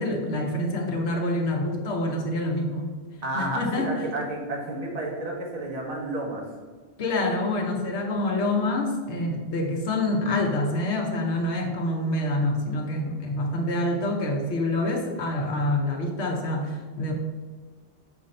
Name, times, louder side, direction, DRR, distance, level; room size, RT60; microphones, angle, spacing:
voice 1, 0.0-2.9 3.3-3.9 7.0-17.1, left 1 dB, 85° left, 1 dB, 1.2 m, -26 dB
voice 2, 3.2-6.4, right 1 dB, 35° right, -2 dB, 1.2 m, -31 dB
6.8 x 2.7 x 5.2 m, 1.5 s
omnidirectional pair, 1.1 m